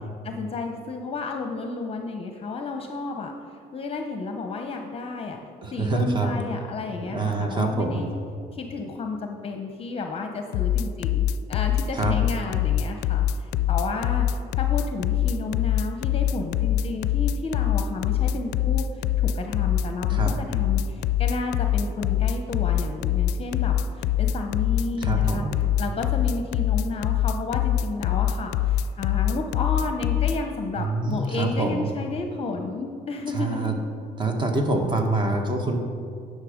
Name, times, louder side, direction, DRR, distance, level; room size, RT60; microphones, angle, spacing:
voice 1, 0.2-3.3 3.7-5.4 5.7-8.1 8.5-33.8, left 4 dB, 35° left, 4 dB, 0.8 m, -32 dB
voice 2, 5.6-6.3 7.1-8.0 12.0-12.1 20.1-20.3 25.0-25.7 30.8-31.9 33.3-33.7 34.2-35.8, right 3 dB, 25° right, 4 dB, 1.3 m, -25 dB
sound 1, 10.5-30.4, left 11 dB, 80° left, 0.4 m, -23 dB
10.5 x 6.5 x 5.1 m, 2.3 s
cardioid pair, 110°, 17 cm